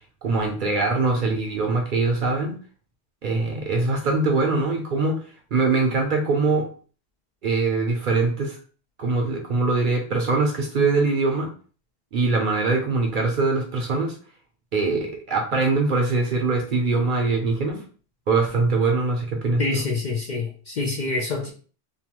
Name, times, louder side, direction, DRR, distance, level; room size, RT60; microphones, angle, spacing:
voice 1, 0.2-2.6 3.2-5.2 5.5-6.7 7.4-8.6 9.0-11.5 12.1-14.2 14.7-17.8 18.3-19.9, right 3 dB, 55° right, 0.6 m, -22 dB
voice 2, 19.6-21.5, left 3 dB, 55° left, 0.5 m, -26 dB
2.8 x 2.2 x 2.9 m
omnidirectional pair, 1.2 m